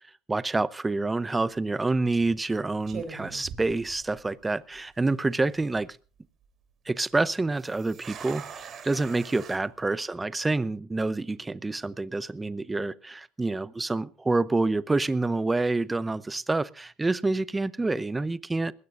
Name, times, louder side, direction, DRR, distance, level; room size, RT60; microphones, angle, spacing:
voice 1, 0.3-6.0 6.9-18.7, right 3 dB, 15° right, 0.7 m, -27 dB
sound 1, 1.3-1.6 2.3-2.5 2.9-4.4 4.7-4.8 5.4-5.8 7.6-9.6, right 6 dB, 45° right, 3.5 m, -42 dB
21.5 x 16.5 x 2.6 m
supercardioid pair, 90°, 0 cm